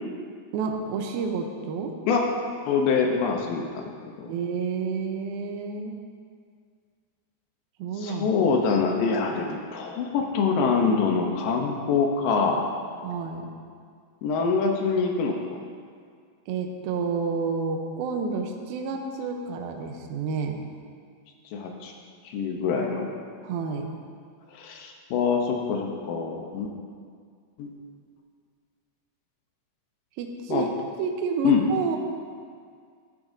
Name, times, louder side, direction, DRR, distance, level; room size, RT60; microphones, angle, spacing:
voice 1, 0.5-2.0 4.3-6.0 7.8-8.3 13.0-13.6 16.5-20.6 23.4-23.9 30.2-30.7 31.0-32.0, right 5 dB, 80° right, 3 dB, 2.3 m, -30 dB
voice 2, 2.7-3.9 4.2-4.3 8.0-12.6 14.2-15.6 21.5-21.9 22.3-23.1 24.5-26.7 27.6-27.7 30.5-30.7 31.4-31.6, left 5 dB, 75° left, 2 dB, 2.1 m, -25 dB
12.5 x 11.0 x 2.6 m, 2.1 s
omnidirectional pair, 4.9 m